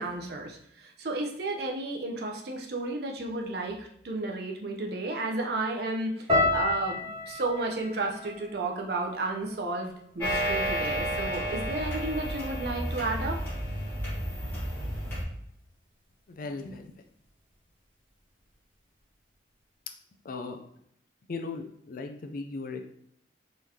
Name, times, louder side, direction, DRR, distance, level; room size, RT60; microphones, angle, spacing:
voice 1, 0.0-13.4, right 2 dB, 55° right, 1 dB, 0.6 m, -32 dB
sound 1, 6.3-10.5 10.8-11.5 12.1-12.4, left 2 dB, 30° right, 1.3 m, -32 dB
sound 2, 10.2-15.2, equal, 10° left, 1.3 m, -31 dB
voice 2, 16.3-17.0 20.2-20.6 21.3-22.8, left 3 dB, 45° left, 5 dB, 0.4 m, -37 dB
3.9 x 3.1 x 2.7 m, 0.71 s
head